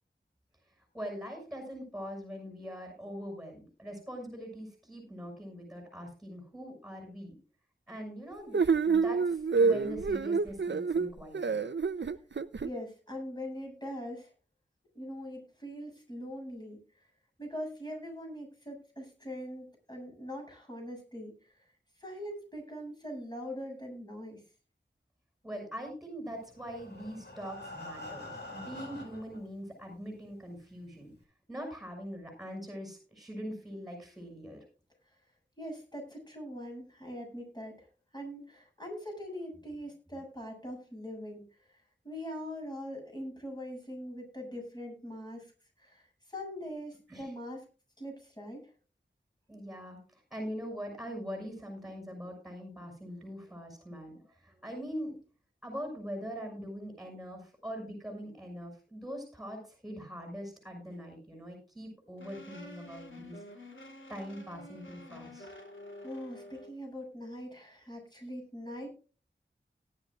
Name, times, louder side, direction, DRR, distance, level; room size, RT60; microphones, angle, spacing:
voice 1, 0.9-7.4 7.9-8.6 8.9-11.6 25.4-31.1 31.5-34.6 47.1-47.3 49.5-55.2 55.6-63.4 64.1-65.5, equal, ahead, 3 dB, 6.3 m, -42 dB
sound 1, 8.5-12.7, right 5 dB, 65° right, 0.7 m, -28 dB
voice 2, 12.6-14.3 14.9-17.1 17.4-21.6 22.0-24.4 35.6-37.9 38.1-45.5 45.8-47.7 48.0-48.7 66.0-69.0, equal, 20° left, 1 dB, 7.4 m, -42 dB
Breathing, 26.5-29.4 30.2-30.3 30.6-30.7 31.2-31.3, left 2 dB, 60° left, 5.5 m, -45 dB
sound 2, 62.2-66.7, left 1 dB, 80° left, 3.1 m, -49 dB
18.0 x 11.0 x 2.4 m, 0.35 s
wide cardioid pair, 60°, 20 cm